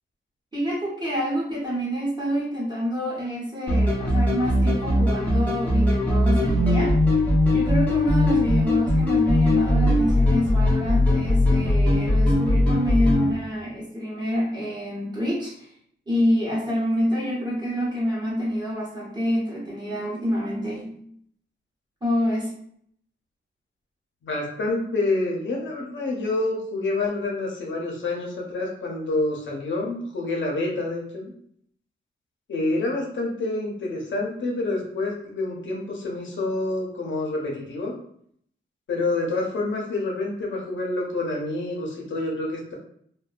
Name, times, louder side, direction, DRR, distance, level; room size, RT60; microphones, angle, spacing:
voice 1, 0.5-7.0 7.5-15.7 16.1-21.0 22.0-22.5, equal, 20° right, -6 dB, 0.9 m, -27 dB
sound 1, 3.7-13.3, left 1 dB, 5° left, 0.7 m, -20 dB
voice 2, 24.2-31.3 32.5-37.9 38.9-42.7, left 2 dB, 65° left, -2 dB, 0.7 m, -27 dB
2.5 x 2.2 x 2.4 m, 0.66 s
wide cardioid pair, 150°, 21 cm